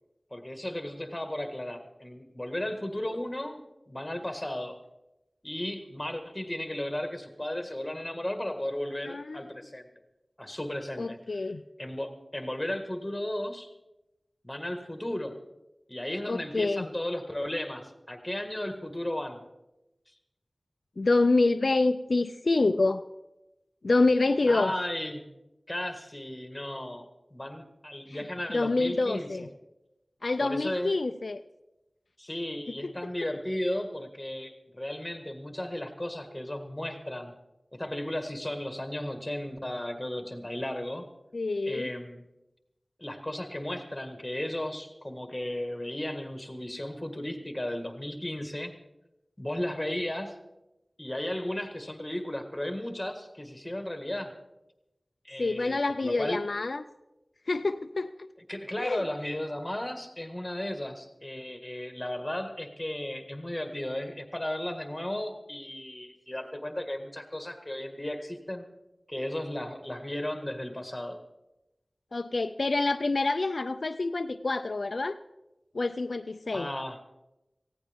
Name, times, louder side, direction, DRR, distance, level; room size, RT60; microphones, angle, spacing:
voice 1, 0.3-4.8 5.4-9.8 10.4-11.5 11.8-13.7 14.4-15.3 15.9-19.4 24.5-25.3 25.7-29.5 30.4-31.0 32.2-37.3 37.7-41.1 41.7-42.2 43.0-48.7 49.4-50.4 51.0-54.3 55.2-56.4 58.5-68.7 69.1-71.2 76.5-77.0, left 1 dB, 20° left, 5 dB, 1.8 m, -35 dB
voice 2, 9.1-9.4 11.0-11.6 16.3-16.9 21.0-23.0 23.8-24.7 28.1-28.2 28.5-29.5 30.2-31.4 32.8-32.9 41.3-41.9 55.4-56.8 57.5-58.1 58.8-59.0 72.1-75.2 75.7-76.7, left 3 dB, 70° left, 9 dB, 0.4 m, -27 dB
18.5 x 15.5 x 3.6 m, 0.97 s
wide cardioid pair, 60°, 0 cm